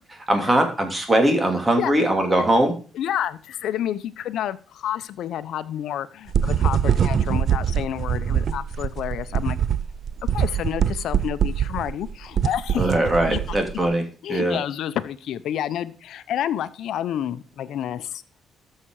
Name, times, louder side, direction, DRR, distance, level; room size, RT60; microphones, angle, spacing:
voice 1, 0.3-2.7 12.8-14.0 14.3-14.6, right 1 dB, 20° right, 4 dB, 3.0 m, -20 dB
voice 2, 2.9-9.6 10.3-12.9 13.3-13.6 14.2-18.2, left 10 dB, 75° left, 13 dB, 0.8 m, -29 dB
sound 1, 6.3-13.9, right 8 dB, 60° right, 0.6 m, -23 dB
13.5 x 6.7 x 4.8 m, 0.39 s
cardioid pair, 90°, 0 cm